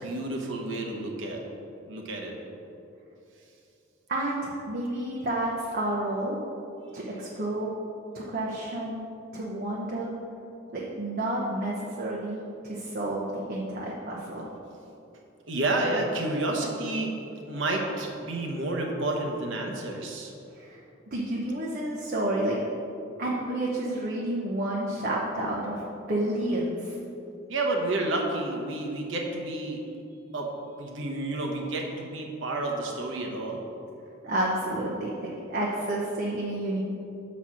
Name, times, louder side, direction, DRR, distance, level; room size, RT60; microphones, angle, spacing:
voice 1, 0.0-1.4 1.9-2.3 15.5-17.1 17.5-20.3 27.5-29.8 30.3-30.5 30.8-33.6, right 2 dB, 65° right, 0 dB, 1.1 m, -30 dB
voice 2, 4.1-6.4 6.9-7.7 8.1-9.0 9.3-10.1 10.7-14.5 20.5-20.8 21.1-22.6 23.2-25.8 26.1-27.0 34.2-35.1 35.5-36.8, right 1 dB, 45° right, -5 dB, 0.9 m, -30 dB
7.1 x 4.3 x 6.1 m, 2.7 s
head